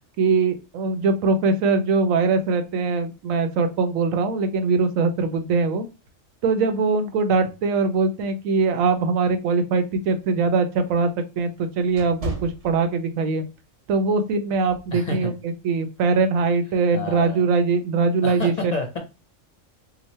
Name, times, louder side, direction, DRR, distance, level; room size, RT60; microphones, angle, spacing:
voice 1, 0.2-5.8 6.4-11.1 11.4-13.4 13.9-18.7, right 4 dB, 90° right, 8 dB, 1.0 m, -22 dB
sound 1, 10.3-13.4 13.8-14.1 14.7-15.0, right 1 dB, 30° right, 0.9 m, -36 dB
voice 2, 14.9-15.3 16.9-17.4 18.2-19.0, left 2 dB, 45° left, 2 dB, 0.6 m, -29 dB
3.0 x 2.1 x 4.1 m, 0.29 s
omnidirectional pair, 1.3 m